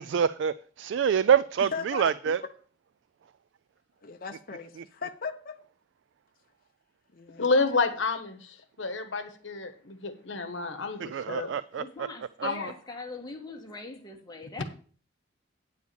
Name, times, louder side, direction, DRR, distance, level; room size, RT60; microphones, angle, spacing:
voice 1, 0.1-2.4 11.0-11.8, right 7 dB, 65° right, 0.3 m, -25 dB
voice 2, 1.6-2.3 4.0-5.6 7.1-7.5, left 5 dB, 45° left, 0.7 m, -38 dB
voice 3, 7.4-11.5 12.4-12.7, left 3 dB, 70° left, 1.2 m, -29 dB
voice 4, 11.8-14.6, left 3 dB, 20° left, 1.6 m, -41 dB
9.5 x 4.7 x 6.9 m
head